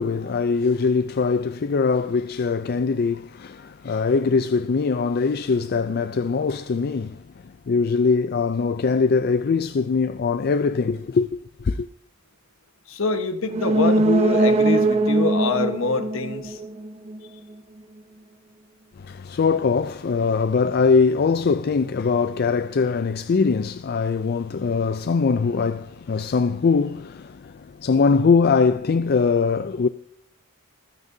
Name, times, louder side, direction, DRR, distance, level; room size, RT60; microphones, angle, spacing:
voice 1, 0.0-11.9 19.0-29.9, left 4 dB, 50° left, 0.4 m, -22 dB
voice 2, 12.9-16.6, left 3 dB, 70° left, 1.3 m, -25 dB
sound 1, 13.5-17.2 17.5-17.6, right 2 dB, 30° right, 0.7 m, -21 dB
26.0 x 9.6 x 2.7 m
head